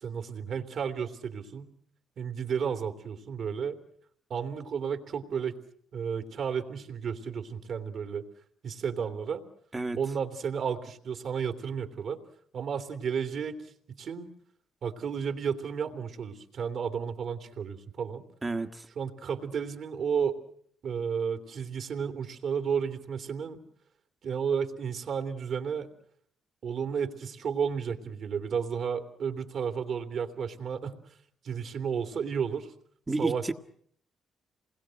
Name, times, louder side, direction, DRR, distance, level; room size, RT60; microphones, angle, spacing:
voice 1, 0.0-1.7 2.2-3.8 4.3-5.6 5.9-8.3 8.6-9.4 10.0-12.2 12.5-14.3 14.8-18.2 18.9-20.4 20.8-23.6 24.2-25.9 26.6-31.1 31.4-32.7 33.2-33.5, right 7 dB, 60° right, 3.0 m, -32 dB
voice 2, 18.4-18.9 33.1-33.5, right 2 dB, 20° right, 1.5 m, -30 dB
28.0 x 21.0 x 7.8 m
cardioid pair, 90°, 0 cm